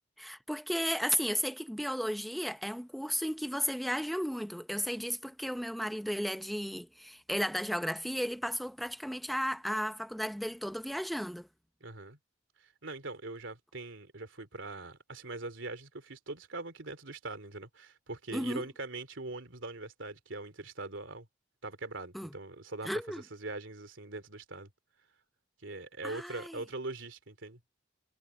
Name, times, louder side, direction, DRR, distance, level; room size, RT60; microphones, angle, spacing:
voice 1, 0.2-11.5 18.3-18.6 22.1-22.3 22.8-23.2 26.0-26.6, equal, ahead, 0.8 m, -34 dB
voice 2, 11.8-12.2 12.6-21.3 21.6-24.7 25.6-27.6, right 2 dB, 80° right, 3.0 m, -42 dB
head